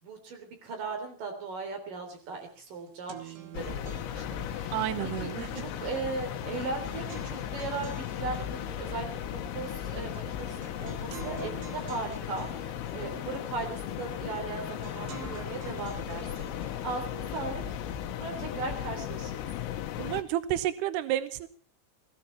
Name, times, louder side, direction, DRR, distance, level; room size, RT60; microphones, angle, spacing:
voice 1, 0.0-4.9 5.2-5.3 5.5-17.6 18.1-19.3, right 4 dB, 45° right, 4 dB, 4.8 m, -38 dB
sound 1, 2.2-2.3 2.6-18.1, right 8 dB, 65° right, 3.5 m, -50 dB
sound 2, 3.5-20.2, left 10 dB, 85° left, 3.7 m, -36 dB
voice 2, 4.7-5.6 20.0-21.5, right 13 dB, 85° right, 13 dB, 2.3 m, -31 dB
20.5 x 15.0 x 4.5 m, 0.43 s
omnidirectional pair, 5.9 m